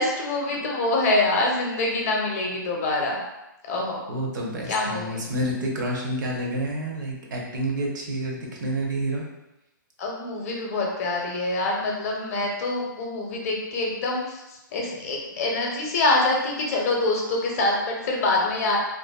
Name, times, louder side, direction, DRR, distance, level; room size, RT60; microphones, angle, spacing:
voice 1, 0.0-3.2 3.7-4.0 4.7-5.2 10.0-14.4 14.7-18.8, left 2 dB, 45° left, -1 dB, 0.6 m, -25 dB
voice 2, 4.1-9.2, right 1 dB, 65° right, -1 dB, 0.7 m, -29 dB
2.5 x 2.2 x 2.2 m, 0.96 s
hypercardioid pair, 145°, 11 cm